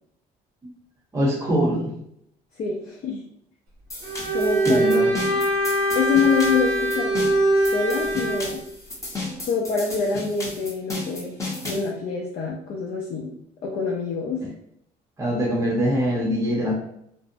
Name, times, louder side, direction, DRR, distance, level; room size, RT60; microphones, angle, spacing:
voice 1, 1.1-1.9 4.7-5.1 15.2-16.7, equal, 20° right, -4 dB, 0.7 m, -23 dB
voice 2, 2.6-3.2 4.3-5.4 5.9-7.1 7.6-8.6 9.5-11.3 11.6-13.3 13.6-14.4, left 5 dB, 50° left, -3 dB, 0.5 m, -26 dB
sound 1, 3.9-11.9, left 2 dB, 15° left, 0.7 m, -34 dB
Bowed string instrument, 4.0-8.5, right 1 dB, 70° right, 1.1 m, -22 dB
2.5 x 2.0 x 2.6 m, 0.73 s
cardioid pair, 110°, 17 cm